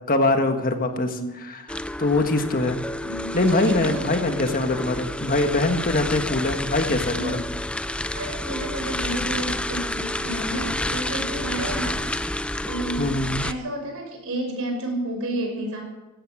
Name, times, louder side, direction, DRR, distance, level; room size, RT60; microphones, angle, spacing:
voice 1, 0.1-1.1 1.4-2.8 3.3-7.4 13.0-13.4, left 2 dB, 40° left, 6 dB, 1.6 m, -23 dB
voice 2, 0.9-1.3 3.1-4.2 7.1-7.4 8.1-12.0 12.6-13.1 13.4-15.8, right 1 dB, 70° right, 2 dB, 5.7 m, -31 dB
sound 1, 1.7-13.5, left 1 dB, 5° left, 0.4 m, -29 dB
16.0 x 13.5 x 6.3 m, 1.1 s
head